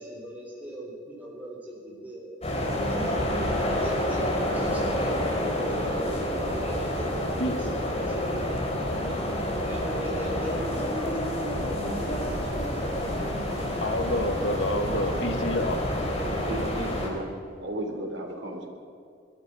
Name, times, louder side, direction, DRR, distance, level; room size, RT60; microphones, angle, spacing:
voice 1, 0.0-2.3 2.8-8.6 9.1-11.9, right 1 dB, 10° right, -4 dB, 3.9 m, -40 dB
sound 1, 2.4-17.1, left 1 dB, 35° left, 4.3 m, -28 dB
sound 2, 11.8-16.8, right 1 dB, 40° right, 2.9 m, -40 dB
voice 2, 13.8-15.8, left 1 dB, 90° left, 6 dB, 2.1 m, -28 dB
voice 3, 16.3-17.3 17.6-18.7, right 1 dB, 75° right, 1 dB, 3.9 m, -35 dB
20.5 x 13.5 x 9.5 m, 2.4 s
head